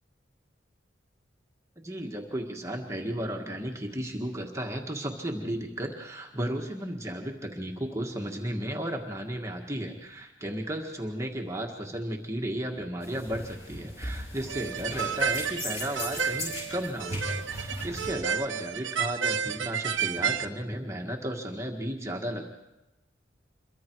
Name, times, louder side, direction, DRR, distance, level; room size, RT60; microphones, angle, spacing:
voice 1, 1.8-22.5, right 1 dB, 15° right, 0 dB, 1.7 m, -34 dB
sound 1, 13.0-18.1, left 1 dB, 35° left, 7.0 m, -38 dB
sound 2, 14.5-20.5, right 7 dB, 75° right, 1.1 m, -31 dB
27.5 x 23.5 x 4.7 m, 1.0 s
head